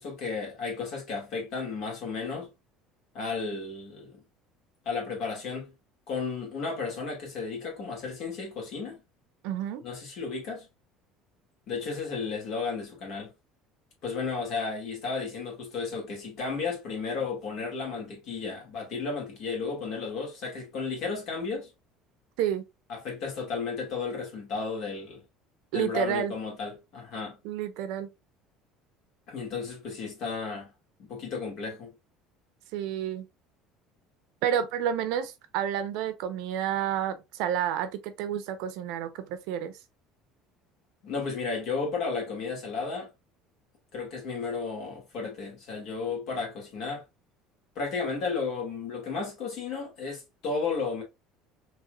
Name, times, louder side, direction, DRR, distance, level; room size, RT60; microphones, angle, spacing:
voice 1, 0.0-2.5 3.1-4.2 4.9-5.7 6.1-9.0 9.8-10.7 11.7-13.3 14.0-21.7 22.9-25.2 25.7-27.4 29.3-30.7 31.0-31.9 41.0-43.1 43.9-47.0 47.8-51.0, left 4 dB, 50° left, 2.2 m, -33 dB
voice 2, 9.4-9.8 22.4-22.6 25.7-26.3 27.4-28.1 32.7-33.3 34.4-39.7, right 9 dB, 70° right, 0.7 m, -30 dB
4.3 x 3.1 x 2.4 m
cardioid pair, 155°, 0 cm